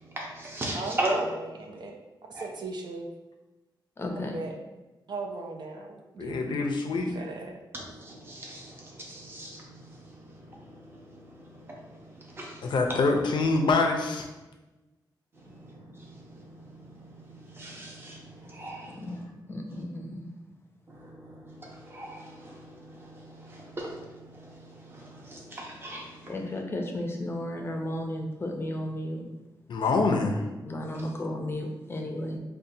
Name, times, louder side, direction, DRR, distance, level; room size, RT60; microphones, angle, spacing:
voice 1, 0.1-1.2 2.3-2.4 7.7-9.8 10.9-11.8 12.2-12.7 16.0-16.1 16.5-19.2 20.9-26.1, right 1 dB, 30° right, -2 dB, 0.7 m, -38 dB
voice 2, 0.7-2.0 2.4-3.1 4.1-4.6 5.1-6.6 6.9-7.6, right 3 dB, 65° right, 2 dB, 0.5 m, -38 dB
voice 3, 4.0-4.4 18.9-20.3 26.3-29.2 30.6-32.4, left 1 dB, 30° left, 2 dB, 0.5 m, -34 dB
voice 4, 6.2-7.2 12.6-14.3 29.7-30.4, left 3 dB, 75° left, 2 dB, 0.5 m, -25 dB
5.3 x 2.2 x 2.7 m, 1.1 s
wide cardioid pair, 145°, 8 cm